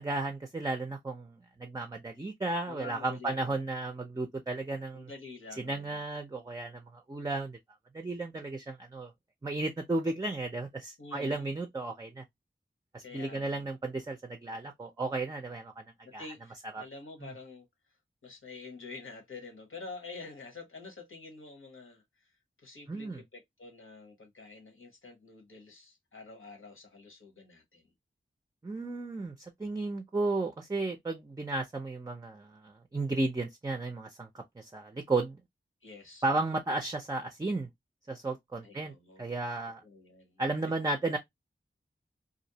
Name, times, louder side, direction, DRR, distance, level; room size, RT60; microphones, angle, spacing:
voice 1, 0.0-5.1 5.6-7.6 7.9-9.1 9.4-12.2 12.9-15.8 16.1-16.2 16.7-16.8 17.2-17.3 22.9-23.2 28.6-35.4 36.2-37.7 38.1-39.8 40.4-41.2, right 2 dB, 20° right, 0.4 m, -34 dB
voice 2, 2.7-3.6 4.9-6.0 11.0-11.5 13.0-13.6 16.0-17.7 18.2-22.3 22.6-27.9 35.8-36.4 38.6-39.2 39.8-40.4, left 3 dB, 80° left, 1.0 m, -48 dB
2.5 x 2.0 x 2.7 m
wide cardioid pair, 50°, 21 cm